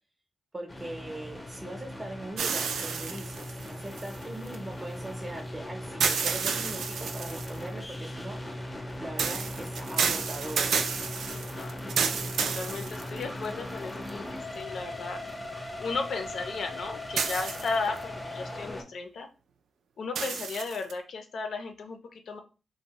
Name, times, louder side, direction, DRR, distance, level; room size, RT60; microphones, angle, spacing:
voice 1, 0.5-8.6 9.0-10.8, right 1 dB, 25° right, 1 dB, 0.6 m, -41 dB
sound 1, 0.7-18.8, left 1 dB, 20° left, 0.4 m, -39 dB
sound 2, 2.4-4.5 6.0-7.6 9.2-13.5 14.1-14.2 17.2-18.0 20.1-20.9, right 6 dB, 85° right, 0.3 m, -30 dB
voice 2, 11.3-15.2 15.8-19.3 20.0-22.4, left 4 dB, 75° left, 6 dB, 0.4 m, -35 dB
2.6 x 2.0 x 2.9 m, 0.32 s
cardioid pair, 105°, 0 cm